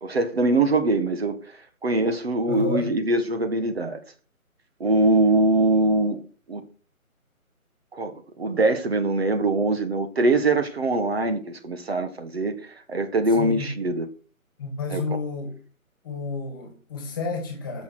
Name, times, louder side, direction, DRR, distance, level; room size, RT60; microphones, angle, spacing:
voice 1, 0.0-1.4 1.8-4.0 4.8-6.2 6.5-6.6 7.9-14.1 14.9-15.0, right 2 dB, 45° right, 1.7 m, -23 dB
voice 2, 2.5-2.9 13.3-13.7 14.6-15.5 16.0-17.8, left 3 dB, 15° left, 2.0 m, -30 dB
15.5 x 6.7 x 6.2 m
figure-of-eight pair, 170°, 43 cm